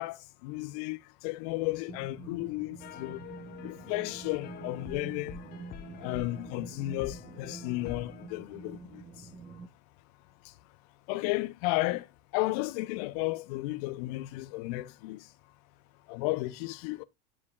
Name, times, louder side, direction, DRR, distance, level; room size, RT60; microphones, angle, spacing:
voice 1, 0.0-3.2 3.6-5.4 6.0-9.0 11.1-12.1 12.3-15.2 16.1-17.0, left 19 dB, 70° left, 0.5 m, -33 dB
sound 1, 1.9-9.7, right 4 dB, 35° right, 0.9 m, -47 dB
sound 2, 2.8-8.3, left 11 dB, 50° left, 0.9 m, -47 dB
9.8 x 4.9 x 2.2 m
hypercardioid pair, 95°, 21 cm